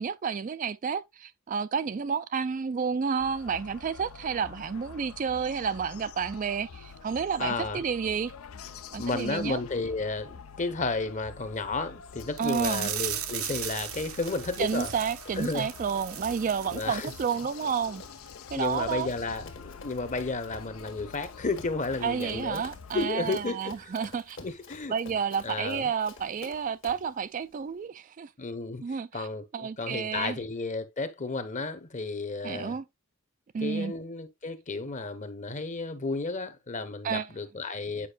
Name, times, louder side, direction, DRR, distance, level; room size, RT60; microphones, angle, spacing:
voice 1, 0.0-8.3 8.9-9.6 12.4-12.9 14.6-18.0 18.5-19.1 22.0-24.4 24.9-28.3 28.8-29.3 29.5-30.4 32.4-32.8 33.5-33.9 37.0-37.3, right 6 dB, 40° right, 0.3 m, -30 dB
sound 1, 3.2-23.1, left 6 dB, 80° left, 0.6 m, -46 dB
voice 2, 7.4-7.8 9.0-14.9 15.4-15.7 16.7-17.1 18.5-22.6 22.9-23.9 24.4-24.9 25.4-25.9 28.4-28.8 29.1-32.8 33.6-38.1, left 3 dB, 35° left, 0.9 m, -32 dB
Run, 12.2-27.1, left 4 dB, 60° left, 1.5 m, -50 dB
sound 2, 12.4-17.4 17.7-17.9 18.3-18.4, right 11 dB, 80° right, 0.9 m, -37 dB
8.6 x 5.2 x 2.4 m
head